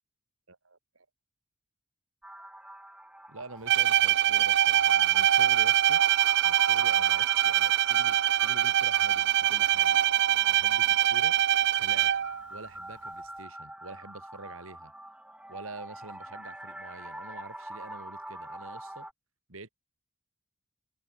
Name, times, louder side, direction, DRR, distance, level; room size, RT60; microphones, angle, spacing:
voice 1, 0.5-1.0 3.3-6.0 6.4-10.0 10.5-11.3 11.8-12.1 12.5-14.9 15.5-19.1 19.5-19.7, right 3 dB, 85° right, 3.4 m, -46 dB
sound 1, 2.2-19.1, right 1 dB, 5° right, 6.2 m, -44 dB
Bowed string instrument, 3.7-12.4, right 11 dB, 60° right, 0.5 m, -24 dB
head